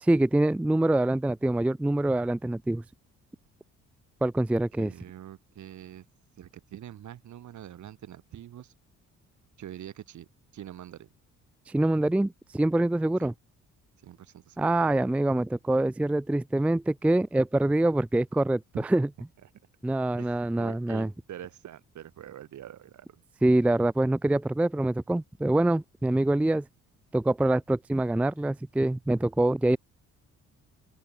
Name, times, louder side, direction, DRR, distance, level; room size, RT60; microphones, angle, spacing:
voice 1, 0.0-2.8 4.2-4.9 11.7-13.3 14.6-18.6 18.9-19.1 19.8-21.1 23.4-26.6 27.1-29.8, right 1 dB, 5° right, 0.4 m, -25 dB
voice 2, 4.8-6.0 6.4-8.7 9.6-10.3 10.5-11.1 13.2-13.3 14.0-14.7 19.4-19.5 20.2-23.2, right 11 dB, 70° right, 4.5 m, -45 dB
open air
cardioid pair, 90°, 30 cm